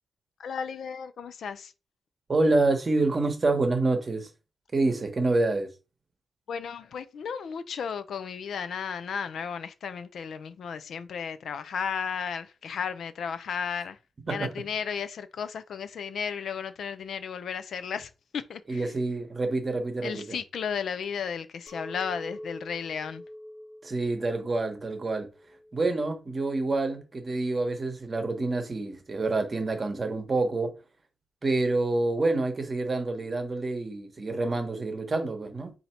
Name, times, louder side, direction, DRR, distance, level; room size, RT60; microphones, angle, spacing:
voice 1, 0.4-1.7 6.5-14.0 14.3-18.9 20.0-23.2, left 7 dB, 75° left, 0.4 m, -34 dB
voice 2, 2.3-4.3 4.7-5.7 14.3-14.5 18.7-20.4 23.8-25.3 25.7-30.7 31.4-35.7, right 2 dB, 35° right, 1.0 m, -27 dB
Chink clink, 21.7-26.8, left 1 dB, 5° right, 1.0 m, -45 dB
4.1 x 2.7 x 4.4 m
cardioid pair, 110°, 0 cm